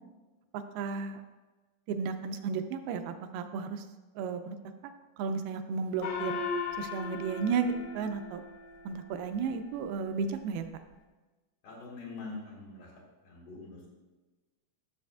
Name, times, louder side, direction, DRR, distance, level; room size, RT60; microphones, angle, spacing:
voice 1, 0.5-1.2 1.9-3.8 4.2-4.6 4.8-4.9 5.2-6.4 6.8-8.4 8.9-10.7, right 5 dB, 80° right, 8 dB, 2.3 m, -33 dB
Gong, 6.0-8.9, left 5 dB, 75° left, 2.2 m, -37 dB
voice 2, 11.6-12.9 13.2-13.9, left 3 dB, 90° left, -3 dB, 4.0 m, -44 dB
12.5 x 6.8 x 2.3 m, 1.2 s
omnidirectional pair, 4.5 m